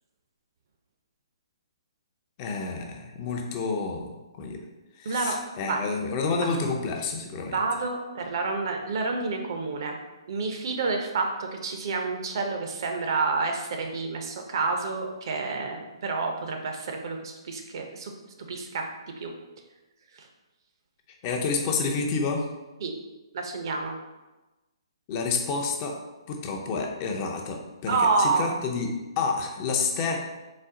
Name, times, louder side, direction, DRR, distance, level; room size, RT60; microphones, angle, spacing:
voice 1, 2.4-4.1 4.4-4.6 5.0-7.6 21.2-22.5 25.1-26.0 26.3-30.2, left 4 dB, 30° left, 2 dB, 0.5 m, -29 dB
voice 2, 5.0-5.4 5.6-5.8 7.5-10.0 10.3-18.1 18.5-18.9 19.2-19.3 20.1-20.3 22.8-22.9 23.3-23.9 27.9-28.5, right 4 dB, 55° right, 3 dB, 0.6 m, -28 dB
4.0 x 2.0 x 3.7 m, 1.1 s
hypercardioid pair, 135°, 3 cm